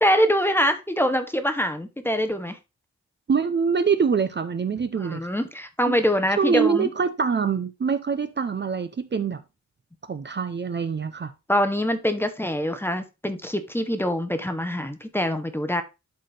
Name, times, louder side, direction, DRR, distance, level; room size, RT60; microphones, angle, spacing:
voice 1, 0.0-2.6 5.0-6.9 11.5-15.8, equal, 5° left, 0.8 m, -24 dB
voice 2, 3.3-5.3 5.9-6.0 6.4-9.4 10.1-11.3, right 6 dB, 40° right, 0.5 m, -24 dB
11.5 x 4.2 x 3.3 m
wide cardioid pair, 165°, 30 cm